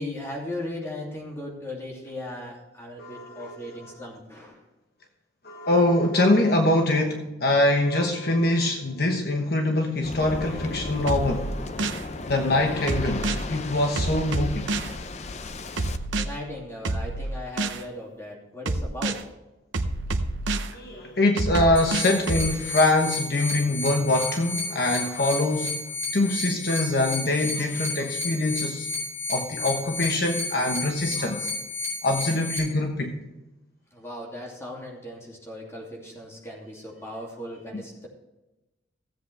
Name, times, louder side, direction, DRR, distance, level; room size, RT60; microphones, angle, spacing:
voice 1, 0.0-4.6 16.1-19.3 33.9-38.1, left 1 dB, 15° left, -3 dB, 2.6 m, -37 dB
voice 2, 3.0-3.8 5.4-11.5 12.3-14.7 20.7-25.8 26.1-28.9 29.3-31.5 32.0-33.2, left 2 dB, 55° left, 3 dB, 1.1 m, -24 dB
Waves surf, 10.0-16.0, left 2 dB, 35° left, 0.6 m, -35 dB
sound 1, 11.1-12.0 12.9-13.4 14.0-14.9 15.8-16.2 16.8-17.8 18.7-19.2 19.7-20.7 21.4-22.5, right 2 dB, 75° right, 0.8 m, -27 dB
sound 2, 21.8-32.6, left 3 dB, 70° left, 4.7 m, -32 dB
16.0 x 8.0 x 3.4 m, 1.0 s
head